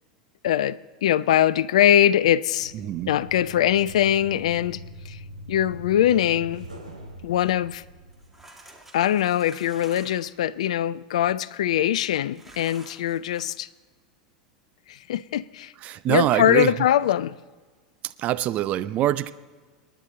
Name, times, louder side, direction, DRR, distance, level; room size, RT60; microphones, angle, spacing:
voice 1, 0.4-2.7 3.1-5.2 5.5-6.7 7.2-7.8 8.9-13.7 14.9-15.7 16.1-17.4, left 11 dB, 60° left, 0.4 m, -22 dB
sound 1, 2.6-8.4, right 1 dB, 85° right, 3.3 m, -42 dB
voice 2, 2.7-3.1 15.8-16.7 18.2-19.3, right 13 dB, 35° right, 0.6 m, -24 dB
sound 2, 8.1-10.3 12.3-13.4, right 1 dB, 5° right, 2.3 m, -49 dB
28.0 x 10.5 x 4.1 m
figure-of-eight pair, 85°, 4 cm